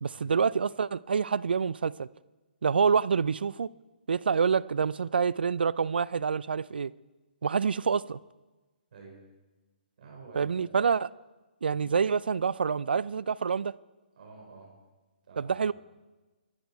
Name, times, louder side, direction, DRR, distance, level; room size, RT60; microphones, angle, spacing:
voice 1, 0.0-2.1 2.6-3.7 4.1-6.9 7.4-8.2 10.4-11.1 11.6-13.7 15.4-15.7, right 6 dB, 70° right, 0.4 m, -27 dB
voice 2, 8.9-9.2 10.0-10.8 11.7-11.9 14.2-14.7 15.2-15.7, right 3 dB, 55° right, 4.7 m, -50 dB
23.0 x 10.0 x 4.6 m
figure-of-eight pair, 140°, 5 cm